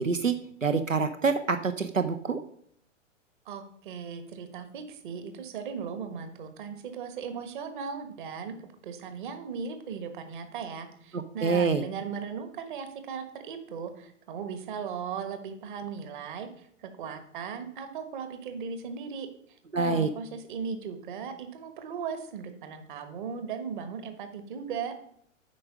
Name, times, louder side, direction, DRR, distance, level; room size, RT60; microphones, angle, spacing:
voice 1, 0.0-2.4 11.1-11.8 19.7-20.1, right 4 dB, 85° right, 9 dB, 0.7 m, -26 dB
voice 2, 3.5-8.5 8.8-19.3 19.7-24.9, right 6 dB, 40° right, 9 dB, 1.3 m, -37 dB
8.5 x 5.2 x 6.1 m, 0.66 s
figure-of-eight pair, 110°, 38 cm